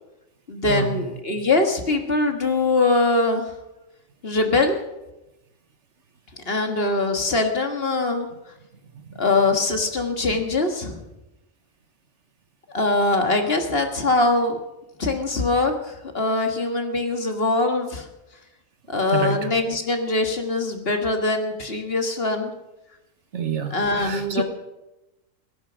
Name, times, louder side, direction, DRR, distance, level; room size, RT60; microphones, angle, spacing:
voice 1, 0.5-3.4 4.2-4.8 6.5-8.3 9.2-11.0 12.7-14.6 15.0-18.1 18.9-22.5 23.7-24.4, left 2 dB, 45° left, 5 dB, 1.9 m, -22 dB
voice 2, 19.1-19.5 23.3-24.4, right 6 dB, 60° right, 8 dB, 1.5 m, -28 dB
17.5 x 13.0 x 6.2 m, 0.97 s
omnidirectional pair, 1.4 m